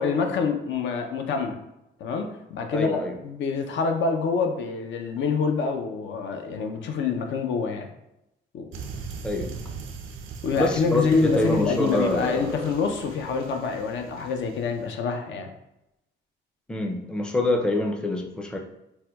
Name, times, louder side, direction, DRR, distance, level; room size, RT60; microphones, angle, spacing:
voice 1, 0.0-1.6 2.0-7.9 8.5-8.7 10.4-15.5, left 5 dB, 70° left, 0.5 m, -26 dB
voice 2, 2.7-3.2 9.2-9.5 10.6-12.6 16.7-18.6, left 1 dB, 5° left, 0.4 m, -26 dB
sound 1, 8.7-14.9, right 5 dB, 85° right, 0.4 m, -40 dB
4.2 x 2.1 x 2.2 m
cardioid pair, 90°, 20 cm